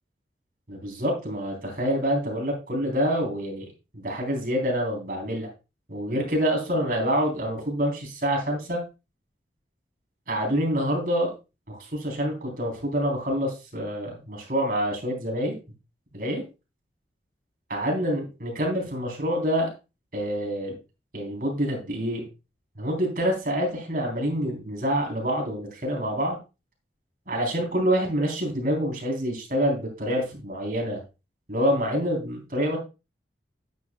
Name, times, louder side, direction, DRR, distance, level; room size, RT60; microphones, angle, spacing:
voice 1, 0.7-3.7 3.9-5.5 5.9-8.8 10.3-11.3 11.7-15.6 16.1-16.4 17.7-19.7 20.1-20.7 21.1-22.2 22.8-26.4 27.3-31.0 31.5-32.8, equal, 50° right, 0 dB, 3.6 m, -27 dB
10.5 x 9.3 x 2.3 m, 0.29 s
head